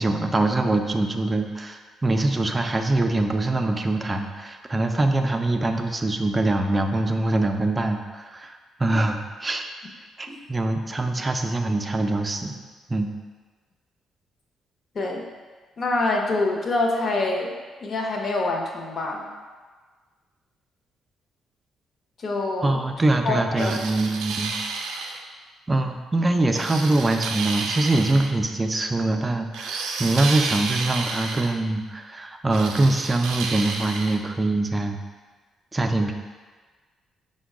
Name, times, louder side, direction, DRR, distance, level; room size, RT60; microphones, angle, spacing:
voice 1, 0.0-9.7 10.2-12.5 12.9-13.1 22.6-24.5 25.7-35.0 35.7-36.1, right 2 dB, 20° right, 5 dB, 0.4 m, -23 dB
voice 2, 15.8-17.5 17.8-19.3 22.2-22.8 23.2-23.7, left 2 dB, 50° left, 0 dB, 0.7 m, -25 dB
sound 1, 23.6-25.2 26.5-28.3 29.5-31.6 32.5-34.2, right 4 dB, 90° right, 0.4 m, -31 dB
5.0 x 2.2 x 4.7 m, 1.4 s
cardioid pair, 90°, 0 cm